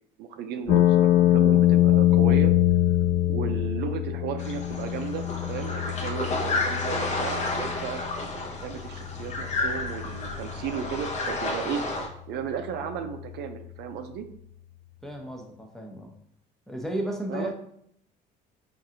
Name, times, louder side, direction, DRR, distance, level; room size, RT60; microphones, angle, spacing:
voice 1, 0.2-2.5 3.3-8.0 8.3-11.8 12.3-14.3 17.3-17.5, right 7 dB, 80° right, 7 dB, 0.4 m, -34 dB
sound 1, 0.7-14.7, left 13 dB, 75° left, 0.4 m, -25 dB
sound 2, 4.4-12.1, left 2 dB, 45° left, 0.7 m, -31 dB
voice 2, 15.0-16.1 16.7-17.5, right 1 dB, ahead, 1 dB, 0.6 m, -33 dB
4.7 x 2.5 x 2.8 m, 0.70 s
cardioid pair, 110°, 17 cm